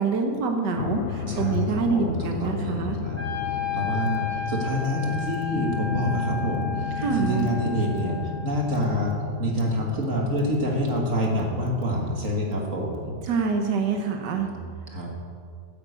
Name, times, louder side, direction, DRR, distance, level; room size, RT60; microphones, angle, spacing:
voice 1, 0.0-3.0 7.0-7.5 13.3-14.5, right 5 dB, 90° right, 4 dB, 1.6 m, -26 dB
sound 1, 0.8-12.5, left 6 dB, 60° left, 0.8 m, -33 dB
voice 2, 1.3-13.2 14.4-15.1, equal, 50° right, 0 dB, 2.1 m, -27 dB
Wind instrument woodwind instrument, 3.2-9.2, left 7 dB, 5° right, 2.1 m, -33 dB
9.6 x 9.2 x 8.1 m, 2.1 s
omnidirectional pair, 1.8 m